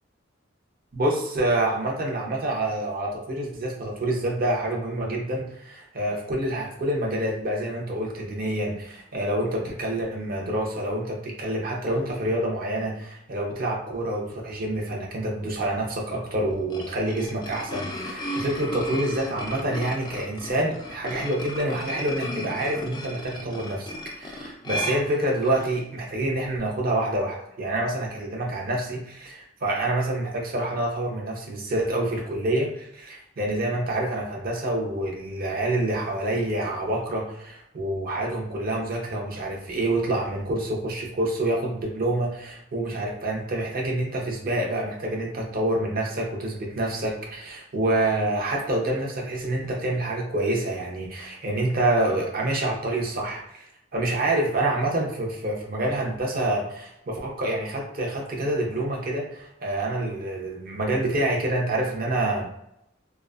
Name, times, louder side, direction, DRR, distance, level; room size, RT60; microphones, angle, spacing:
voice 1, 0.9-53.7 53.9-62.5, right 1 dB, 50° right, -1 dB, 0.6 m, -27 dB
sound 1, 16.5-25.8, equal, 25° left, 0.3 m, -35 dB
2.5 x 2.2 x 2.3 m, 0.79 s
head